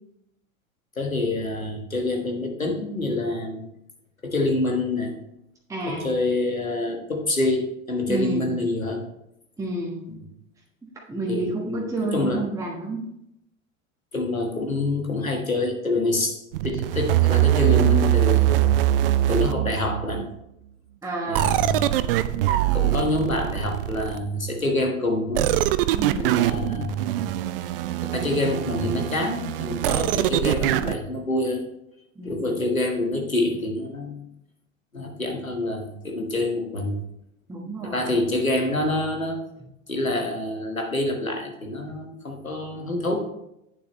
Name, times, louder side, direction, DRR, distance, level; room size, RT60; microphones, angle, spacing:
voice 1, 1.0-3.7 4.2-5.2 5.9-9.0 10.1-10.2 11.3-12.5 14.1-18.7 19.3-20.3 21.3-22.1 22.7-25.5 26.2-27.2 28.0-31.7 32.2-34.2 34.9-37.0 37.9-39.4 39.9-43.2, left 2 dB, 85° left, 2 dB, 1.5 m, -26 dB
voice 2, 5.7-6.1 8.1-8.5 9.6-10.1 11.1-13.1 21.0-21.6 25.9-26.4 32.2-32.6 37.5-38.1, right 2 dB, 10° right, -3 dB, 1.3 m, -30 dB
sound 1, 16.5-20.2 21.3-24.4 25.3-31.0, right 14 dB, 45° right, 0.5 m, -23 dB
9.0 x 6.8 x 3.1 m, 0.81 s
figure-of-eight pair, 90°, 40 cm